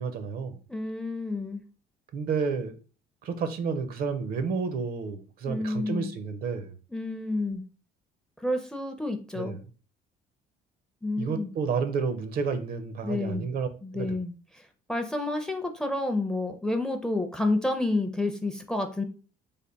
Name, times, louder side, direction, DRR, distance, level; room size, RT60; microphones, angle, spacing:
voice 1, 0.0-0.6 2.1-2.7 3.2-6.8 9.3-9.6 11.2-13.7 13.9-14.1, right 5 dB, 60° right, 0.6 m, -30 dB
voice 2, 0.7-1.6 5.4-6.1 6.9-7.6 8.4-9.6 11.0-11.5 13.0-13.5 13.8-19.0, left 2 dB, 5° left, 0.4 m, -30 dB
3.4 x 2.1 x 4.0 m
cardioid pair, 110°, 17 cm